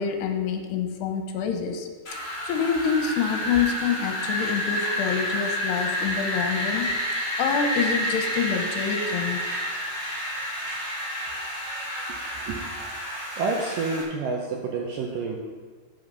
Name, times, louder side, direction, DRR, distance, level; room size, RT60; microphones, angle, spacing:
voice 1, 0.0-1.9 2.5-6.9 7.4-9.5, left 7 dB, 80° left, 5 dB, 2.9 m, -26 dB
Wind, 2.0-14.0, equal, 25° left, 1.9 m, -29 dB
voice 2, 13.3-15.4, right 4 dB, 75° right, -1 dB, 2.0 m, -29 dB
9.3 x 7.8 x 5.5 m, 1.5 s
omnidirectional pair, 4.9 m